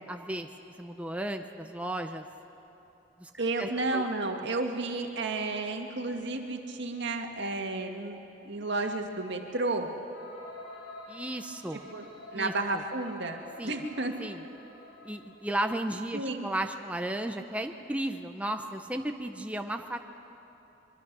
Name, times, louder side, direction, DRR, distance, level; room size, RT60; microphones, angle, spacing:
voice 1, 0.1-0.5 0.8-2.2 3.2-3.3 3.6-4.0 11.1-11.8 12.3-12.5 13.6-13.7 14.2-14.4 15.0-20.0, right 1 dB, 5° right, 5 dB, 0.6 m, -34 dB
voice 2, 3.4-8.2 8.4-9.9 11.7-12.1 12.3-14.1 16.1-16.5, right 2 dB, 65° right, 3 dB, 1.9 m, -32 dB
sound 1, 10.1-15.7, left 2 dB, 90° left, 5.0 m, -48 dB
24.0 x 23.5 x 6.1 m, 3.0 s
head